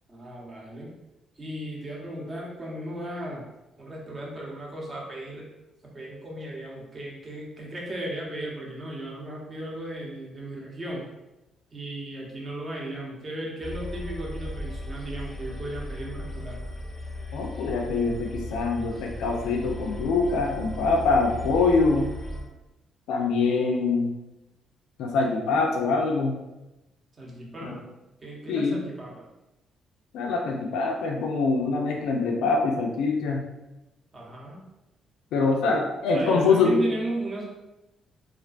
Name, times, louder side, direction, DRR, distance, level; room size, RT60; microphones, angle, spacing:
voice 1, 0.1-0.9 1.4-3.5 3.8-5.5 5.8-11.1 11.7-16.6 27.2-27.8 28.2-29.2 34.1-34.6 36.1-37.5, right 1 dB, 35° right, -3 dB, 0.7 m, -35 dB
sound 1, 13.6-22.4, left 1 dB, 15° left, 0.6 m, -36 dB
voice 2, 17.3-22.1 23.1-24.1 25.0-26.4 27.6-27.7 28.5-28.9 30.1-33.4 35.3-36.8, left 4 dB, 90° left, 1 dB, 0.3 m, -24 dB
2.4 x 2.2 x 2.4 m, 0.98 s
cardioid pair, 90°, 0 cm